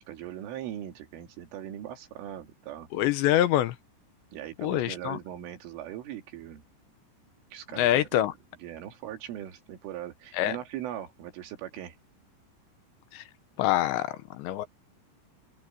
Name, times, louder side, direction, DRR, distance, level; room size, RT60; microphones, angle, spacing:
voice 1, 0.0-2.9 4.3-6.6 7.5-8.3 8.6-12.0, right 11 dB, 85° right, 5.0 m, -40 dB
voice 2, 2.9-3.8 4.6-5.2 7.8-8.3 10.4-10.6 13.1-13.2 13.6-14.7, left 13 dB, 80° left, 3.0 m, -25 dB
open air
omnidirectional pair, 5.5 m